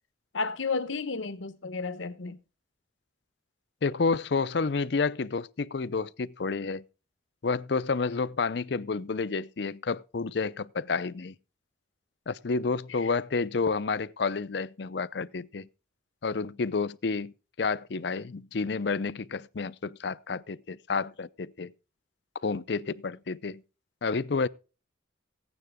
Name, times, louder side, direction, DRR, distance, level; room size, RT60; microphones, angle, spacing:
voice 1, 0.3-2.4 13.0-13.1, left 4 dB, 90° left, 1.0 m, -32 dB
voice 2, 3.8-6.8 7.4-11.3 12.3-15.7 16.2-17.3 17.6-21.7 22.4-23.6 24.0-24.5, left 4 dB, 60° left, 0.5 m, -30 dB
15.5 x 9.5 x 3.6 m
head